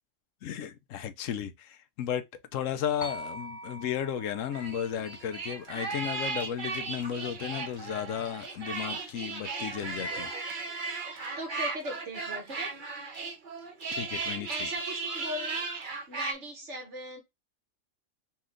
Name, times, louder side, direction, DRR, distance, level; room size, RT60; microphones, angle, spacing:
voice 1, 0.4-2.3 2.5-10.3 13.9-14.7, left 9 dB, 80° left, 1.0 m, -34 dB
sound 1, 3.0-7.2, equal, 30° left, 1.0 m, -45 dB
sound 2, 4.5-16.3, right 4 dB, 40° right, 1.1 m, -36 dB
voice 2, 11.4-12.7 14.5-15.7 16.1-17.2, equal, 65° right, 1.8 m, -39 dB
4.3 x 3.1 x 3.7 m
omnidirectional pair, 1.3 m